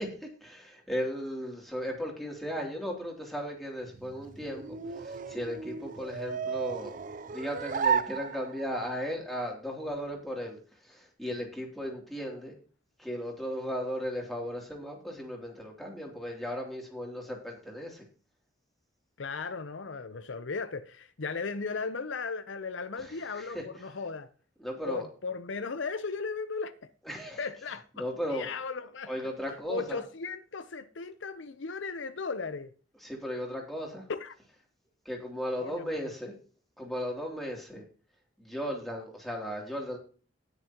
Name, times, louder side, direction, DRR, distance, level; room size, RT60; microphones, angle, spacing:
voice 1, 0.0-7.0 7.3-12.6 13.0-18.0 23.0-23.6 24.6-25.1 27.1-27.5 28.0-28.5 29.1-30.0 33.0-34.0 35.0-36.3 36.8-37.8 38.4-40.0, equal, ahead, 2.9 m, -36 dB
sound 1, 3.8-8.9, right 6 dB, 40° right, 0.4 m, -34 dB
voice 2, 19.2-24.3 24.9-26.9 27.4-29.1 29.7-32.7 34.1-34.3 35.6-36.1, left 4 dB, 75° left, 0.7 m, -36 dB
18.5 x 6.7 x 2.9 m
head